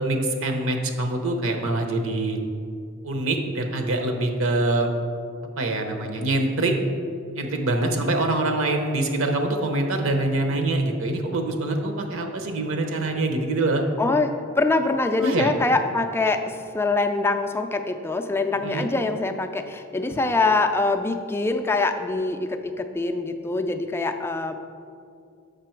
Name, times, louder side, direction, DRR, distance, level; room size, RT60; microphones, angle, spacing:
voice 1, 0.0-2.4 3.0-4.9 5.6-6.7 7.3-13.8 15.2-15.5 18.6-18.9, right 2 dB, 65° right, 4 dB, 0.8 m, -24 dB
voice 2, 14.0-24.5, left 3 dB, 10° left, 6 dB, 0.3 m, -24 dB
6.7 x 5.5 x 4.5 m, 2.4 s
head